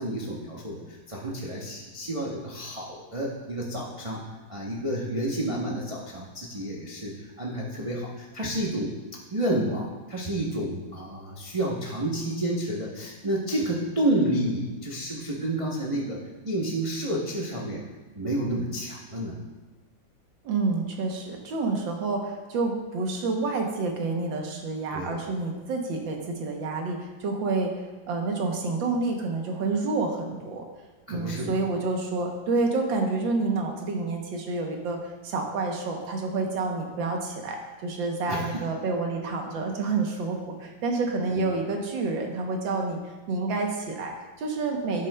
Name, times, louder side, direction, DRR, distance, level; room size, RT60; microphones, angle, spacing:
voice 1, 0.0-4.2 4.5-8.9 9.3-16.2 16.4-17.8 18.1-19.4 24.9-25.2 31.1-31.6 38.3-38.6 40.6-40.7 41.3-41.5, right 1 dB, 35° right, -5 dB, 0.5 m, -30 dB
voice 2, 20.4-27.8 28.1-30.6 31.1-45.1, right 3 dB, 75° right, 2 dB, 1.7 m, -29 dB
11.5 x 7.5 x 2.2 m, 1.2 s
omnidirectional pair, 2.1 m